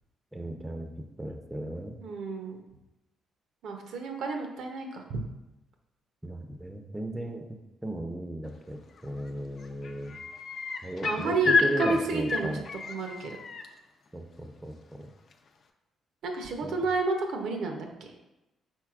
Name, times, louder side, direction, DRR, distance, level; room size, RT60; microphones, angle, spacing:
voice 1, 0.3-0.9 1.2-2.0 6.2-7.4 7.8-10.2 10.8-12.6 14.1-15.1 16.6-16.8, right 1 dB, 10° right, 5 dB, 0.4 m, -36 dB
voice 2, 2.0-2.6 3.6-5.2 11.0-12.6 12.9-13.4 16.2-17.9, right 3 dB, 75° right, 3 dB, 0.6 m, -30 dB
sound 1, 9.0-9.3 9.6-13.7 15.3-15.4, left 4 dB, 55° left, 0.4 m, -30 dB
4.5 x 3.9 x 2.4 m, 0.97 s
cardioid pair, 90°, 0 cm